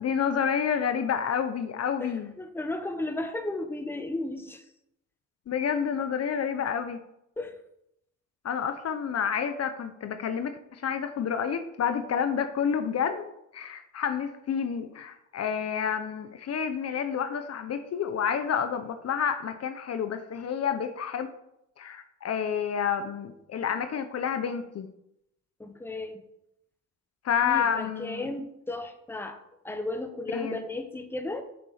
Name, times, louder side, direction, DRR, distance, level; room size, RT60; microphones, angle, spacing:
voice 1, 0.0-2.3 5.5-7.0 8.4-13.3 13.5-21.3 21.8-24.9 27.2-28.3 30.3-30.6, left 7 dB, 55° left, 9 dB, 0.9 m, -29 dB
voice 2, 2.0-4.6 7.4-7.5 25.6-26.2 27.4-31.4, left 2 dB, 5° left, 7 dB, 1.1 m, -34 dB
7.3 x 5.3 x 6.5 m, 0.80 s
cardioid pair, 90°, 30 cm